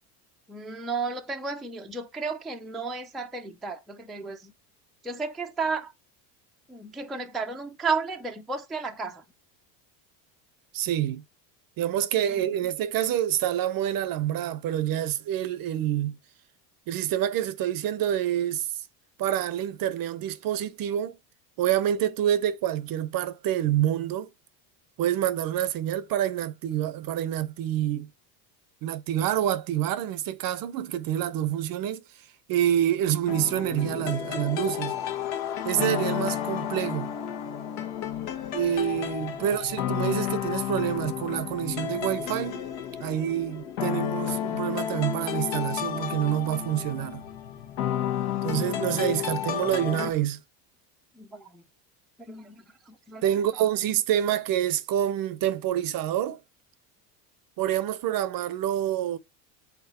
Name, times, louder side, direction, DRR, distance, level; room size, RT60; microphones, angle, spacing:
voice 1, 0.5-4.5 5.0-5.9 6.7-9.2 39.4-39.5 51.2-51.6 52.3-53.3, right 4 dB, ahead, 0.4 m, -33 dB
voice 2, 10.7-11.2 11.8-16.2 16.9-18.7 19.2-21.2 21.6-24.3 25.0-28.1 28.8-32.0 32.5-34.9 35.6-37.1 38.5-42.6 43.0-47.2 48.4-50.4 53.2-56.4 57.6-59.2, right 11 dB, 45° right, 0.6 m, -27 dB
sound 1, 33.3-50.1, left 10 dB, 75° left, 1.3 m, -31 dB
5.9 x 4.0 x 4.1 m
supercardioid pair, 115°, 50 cm